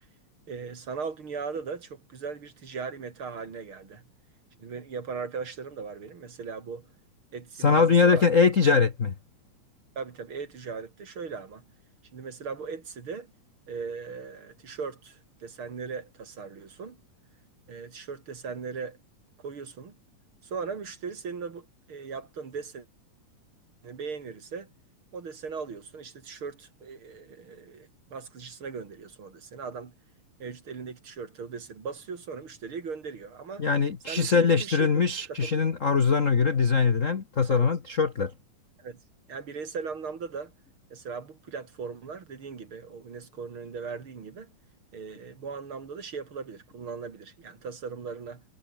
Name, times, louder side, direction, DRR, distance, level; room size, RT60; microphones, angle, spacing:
voice 1, 0.5-4.0 4.6-6.9 7.3-8.2 10.0-11.6 12.1-13.3 13.7-17.0 17.7-19.0 19.4-19.9 20.4-22.9 23.8-24.7 25.1-29.9 30.4-33.7 34.1-34.9 35.3-35.6 37.5-37.7 38.8-39.0 39.3-40.5 40.9-44.5 44.9-48.4, right 5 dB, 45° right, 3.1 m, -38 dB
voice 2, 7.6-9.1 33.6-38.3, left 5 dB, 55° left, 0.8 m, -22 dB
omnidirectional pair, 3.7 m